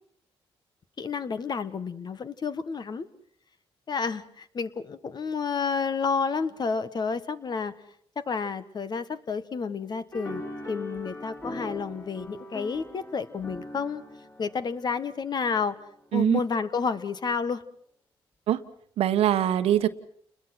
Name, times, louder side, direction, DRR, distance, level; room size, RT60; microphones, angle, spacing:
voice 1, 1.0-3.1 3.9-7.7 8.1-10.4 10.7-14.0 14.4-15.8 16.1-17.6, left 5 dB, 45° left, 12 dB, 1.4 m, -30 dB
sound 1, 10.1-15.7, left 1 dB, 25° left, 4.5 m, -41 dB
voice 2, 19.0-19.9, right 11 dB, 85° right, 10 dB, 1.3 m, -22 dB
29.5 x 21.0 x 6.0 m, 0.62 s
cardioid pair, 90°, 10 cm